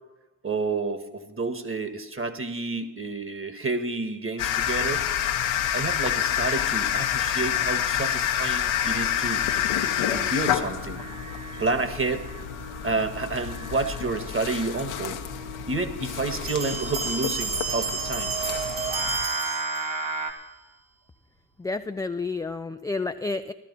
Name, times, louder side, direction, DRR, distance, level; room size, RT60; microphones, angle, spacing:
voice 1, 0.4-5.1 5.7-9.5 10.1-11.0 11.6-12.3 12.8-15.2 15.7-18.3, right 3 dB, 25° right, 9 dB, 1.6 m, -29 dB
sound 1, 4.4-19.2, left 10 dB, 75° left, 1.1 m, -28 dB
Singing, 8.8-20.3, right 3 dB, 65° right, 1.9 m, -37 dB
Bell, 16.5-20.3, right 4 dB, 80° right, 4.0 m, -31 dB
voice 2, 21.6-23.5, left 3 dB, 10° left, 7 dB, 0.3 m, -30 dB
15.0 x 12.5 x 4.2 m, 1.1 s
hypercardioid pair, 45°, 49 cm